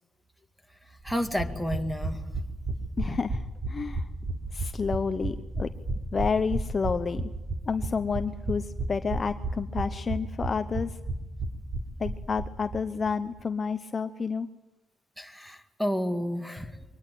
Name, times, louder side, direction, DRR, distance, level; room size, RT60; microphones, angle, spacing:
voice 1, 1.0-2.2 15.2-16.8, equal, ahead, 7 dB, 2.0 m, -31 dB
sound 1, 1.1-12.8 13.1-13.2 13.4-13.5, right 2 dB, 20° right, 3.7 m, -33 dB
voice 2, 3.0-4.1 4.5-5.7 6.1-7.3 7.7-11.0 12.0-14.5, left 5 dB, 30° left, 9 dB, 0.8 m, -30 dB
23.5 x 19.5 x 9.3 m, 1.0 s
cardioid pair, 140°, 0 cm